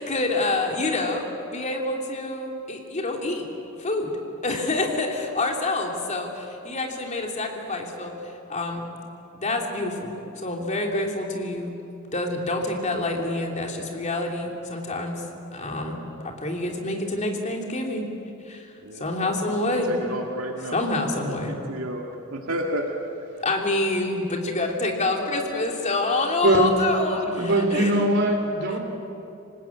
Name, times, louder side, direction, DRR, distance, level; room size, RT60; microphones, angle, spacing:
voice 1, 0.0-3.4 3.8-4.1 4.4-8.1 8.5-8.8 9.3-10.1 10.4-11.7 12.1-15.2 15.5-16.0 16.2-18.1 18.5-18.7 19.0-19.9 20.7-21.5 23.4-27.9, left 2 dB, 35° left, 1 dB, 3.0 m, -27 dB
voice 2, 18.8-22.9 27.2-27.9, right 1 dB, 80° right, 0 dB, 2.1 m, -33 dB
voice 3, 27.3-28.8, right 1 dB, 60° right, 3 dB, 3.7 m, -21 dB
26.5 x 19.0 x 8.6 m, 2.8 s
head